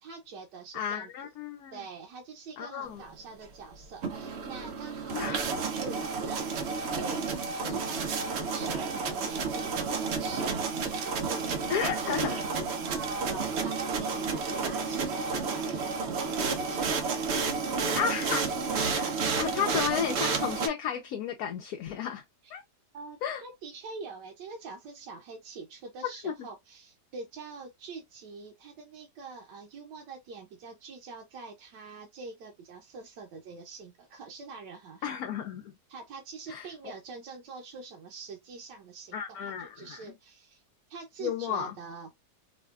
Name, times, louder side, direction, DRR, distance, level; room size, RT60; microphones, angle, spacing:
voice 1, 0.0-1.1 1.7-6.4 6.8-12.4 12.9-16.9 22.4-22.5 22.9-35.2 35.9-40.6 40.9-42.1, right 4 dB, 90° right, 1.4 m, -45 dB
voice 2, 0.7-1.8 2.6-3.0 5.1-5.4 7.6-7.8 11.7-12.4 17.9-18.5 18.8-22.2 22.5-22.6 23.2-23.4 26.2-26.3 35.0-35.7 36.5-36.7 39.1-40.0 41.2-41.8, left 8 dB, 70° left, 1.0 m, -33 dB
sound 1, 3.8-20.7, right 4 dB, 65° right, 0.6 m, -31 dB
4.7 x 2.2 x 2.3 m
omnidirectional pair, 1.8 m